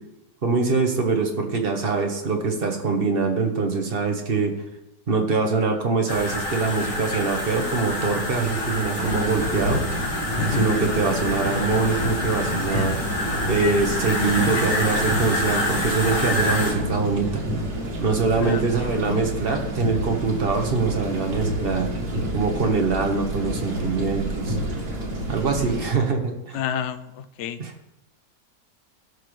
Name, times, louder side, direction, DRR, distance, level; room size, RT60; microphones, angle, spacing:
voice 1, 0.4-4.5 5.1-9.8 10.5-13.0 13.5-17.4 18.0-21.9 22.3-24.6 25.3-26.6 27.6-27.7, right 4 dB, 35° right, 3 dB, 1.4 m, -23 dB
sound 1, 6.1-16.7, left 2 dB, 45° left, 2.3 m, -27 dB
sound 2, 8.9-25.9, right 1 dB, 85° right, 2.5 m, -29 dB
voice 2, 10.4-10.7 18.3-18.6 26.5-27.6, left 7 dB, 75° left, 9 dB, 0.6 m, -29 dB
17.0 x 5.9 x 3.3 m, 0.95 s
omnidirectional pair, 1.9 m